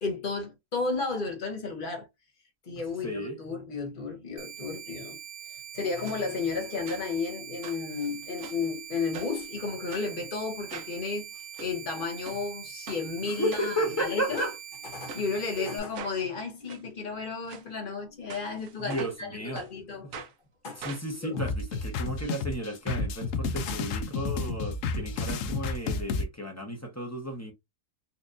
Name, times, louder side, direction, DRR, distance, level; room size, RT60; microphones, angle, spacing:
voice 1, 0.0-2.1 2.7-5.2 5.5-14.5 14.9-20.2 20.6-20.8 21.2-21.4 23.7-23.8, left 4 dB, 40° left, 1.0 m, -33 dB
voice 2, 3.0-3.4 13.2-14.5 15.6-15.7 18.8-19.6 20.8-27.5, equal, 15° left, 0.6 m, -33 dB
sound 1, 4.4-15.8, right 9 dB, 90° right, 1.1 m, -43 dB
sound 2, 6.0-6.2 6.9-7.3 7.6-8.7 9.1-9.5 9.9-10.1 10.7-11.0 11.4-11.7 12.2-12.4 12.9-13.0 13.5-14.0 14.3-14.5 15.1-15.2 15.9-16.2 16.7-16.8 17.4-17.6 18.3-19.2 19.5-19.7 20.1-20.3 20.8-22.3 22.6-22.7 23.0-23.1, right 4 dB, 65° right, 1.0 m, -43 dB
sound 3, 21.4-26.2, left 3 dB, 65° left, 0.9 m, -31 dB
4.4 x 2.5 x 2.5 m
omnidirectional pair, 1.6 m